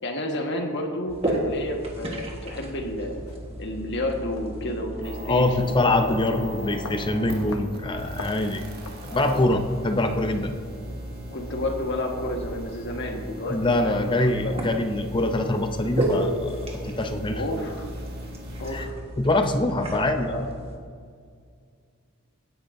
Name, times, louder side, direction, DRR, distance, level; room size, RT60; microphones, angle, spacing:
voice 1, 0.0-3.2 3.6-6.2 6.6-6.7 9.1-9.4 10.9-11.0 11.3-14.6 17.3-17.9 18.6-19.0 20.1-20.5, left 1 dB, 55° left, 2 dB, 1.5 m, -31 dB
sound 1, 1.1-20.8, right 1 dB, 25° right, 1.5 m, -35 dB
sound 2, 3.3-3.4 4.4-4.5 5.0-5.1 5.6-5.7 6.2-6.4 6.8-7.0 7.5-7.7 8.0-8.4 8.8-9.0 9.5-9.7 10.2-10.4, left 4 dB, 80° left, 0.8 m, -40 dB
sound 3, 5.0-18.9, equal, 45° right, 1.7 m, -40 dB
voice 2, 5.2-8.6 9.0-10.6 13.5-17.4 18.7-18.9 19.2-20.5, left 2 dB, 20° left, 6 dB, 0.6 m, -24 dB
16.5 x 10.5 x 2.7 m, 2.2 s
head